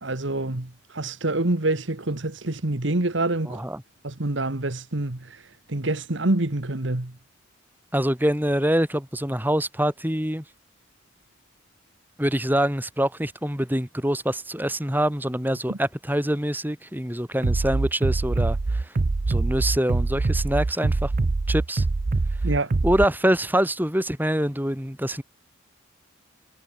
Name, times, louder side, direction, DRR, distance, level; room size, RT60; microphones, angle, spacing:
voice 1, 0.0-3.6 4.0-7.1 15.7-15.8 22.4-22.7, right 2 dB, 65° right, 1.7 m, -26 dB
voice 2, 3.5-3.8 7.9-10.4 12.2-18.9 19.3-21.1 21.5-21.8 22.8-25.2, right 1 dB, 10° right, 4.6 m, -25 dB
Bass drum, 17.4-23.0, right 3 dB, 40° right, 0.5 m, -24 dB
head